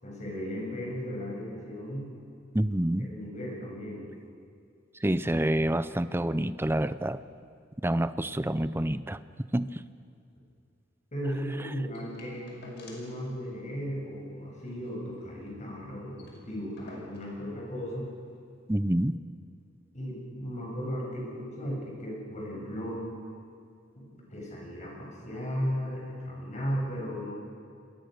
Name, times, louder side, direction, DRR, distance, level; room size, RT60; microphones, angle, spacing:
voice 1, 0.0-2.1 2.6-2.7 3.0-4.1 11.1-18.1 19.9-23.1 23.9-27.3, equal, 40° left, -2 dB, 7.4 m, -36 dB
voice 2, 2.5-3.1 5.0-7.2 7.8-9.2 9.5-9.8 11.6-11.7 18.7-19.1, right 1 dB, 10° right, 14 dB, 0.6 m, -27 dB
sound 1, 11.9-13.2 13.5-13.6 13.9-14.1 14.5-15.6 15.9-16.0 16.2-17.4 18.3-18.4, left 2 dB, 60° left, 5.6 m, -54 dB
28.5 x 21.0 x 6.6 m, 2.4 s
head